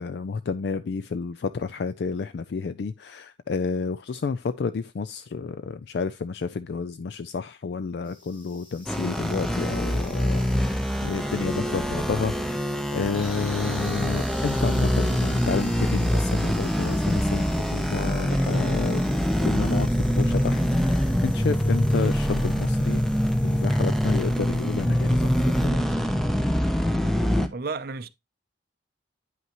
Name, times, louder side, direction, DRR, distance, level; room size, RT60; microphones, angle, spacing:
voice 1, 0.0-17.5 17.7-19.0 19.4-23.0 23.4-25.8, left 5 dB, 60° left, 0.4 m, -30 dB
sound 1, 8.0-25.7, left 2 dB, 25° left, 2.7 m, -48 dB
sound 2, 8.9-27.5, equal, ahead, 0.6 m, -24 dB
voice 2, 27.5-28.1, right 4 dB, 50° right, 0.5 m, -32 dB
9.3 x 5.6 x 2.9 m
head